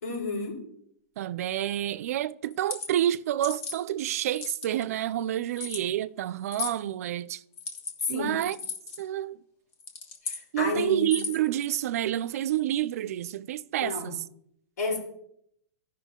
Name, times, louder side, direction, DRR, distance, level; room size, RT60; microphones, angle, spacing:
voice 1, 0.0-0.6 8.0-8.4 10.2-11.2 13.8-14.1 14.8-15.0, left 3 dB, 90° left, 4.6 m, -31 dB
voice 2, 1.2-7.4 8.1-8.6 9.0-9.4 10.5-14.2, right 12 dB, 65° right, 0.4 m, -29 dB
sound 1, 2.5-2.9 3.4-3.8 4.3-4.8 5.5-5.8 6.5-6.8 7.5-7.9 8.5-9.0 9.7-10.4 11.0-11.5, left 4 dB, 30° left, 1.3 m, -35 dB
15.0 x 5.7 x 3.7 m
supercardioid pair, 155°, 9 cm